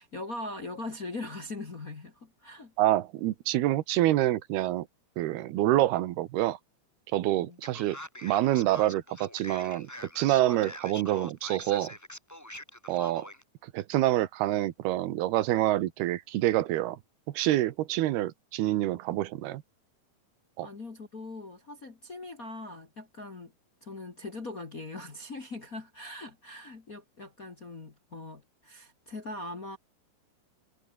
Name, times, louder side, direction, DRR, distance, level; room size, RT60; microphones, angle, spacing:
voice 1, 0.0-2.7 7.4-7.6 20.6-23.5 23.8-29.8, left 2 dB, 35° left, 1.5 m, -41 dB
voice 2, 2.8-4.9 5.2-6.6 7.1-11.9 12.9-13.3 13.6-17.0 17.3-19.6 20.6-20.7, right 15 dB, 80° right, 3.1 m, -27 dB
Male speech man speaking, 7.6-13.4, left 1 dB, 5° left, 3.4 m, -44 dB
omnidirectional pair, 4.5 m